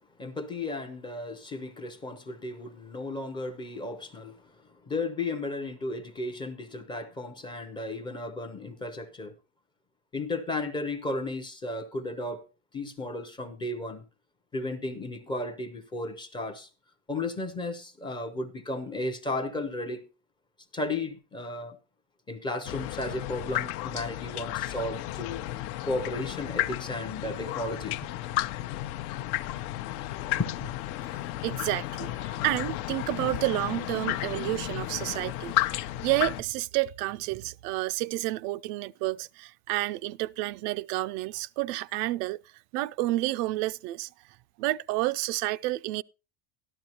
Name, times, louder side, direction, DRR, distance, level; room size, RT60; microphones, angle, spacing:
voice 1, 0.2-4.5 4.9-9.3 10.1-12.4 12.7-14.0 14.5-16.7 17.1-20.0 20.7-21.8 22.3-25.4 25.8-28.2 30.4-30.7, left 2 dB, 10° left, 0.5 m, -34 dB
sound 1, 22.7-36.4, left 15 dB, 70° left, 0.7 m, -33 dB
voice 2, 31.4-42.4 42.7-44.1 44.6-46.0, right 18 dB, 90° right, 0.6 m, -30 dB
13.0 x 12.0 x 2.8 m
cardioid pair, 175°, 45 cm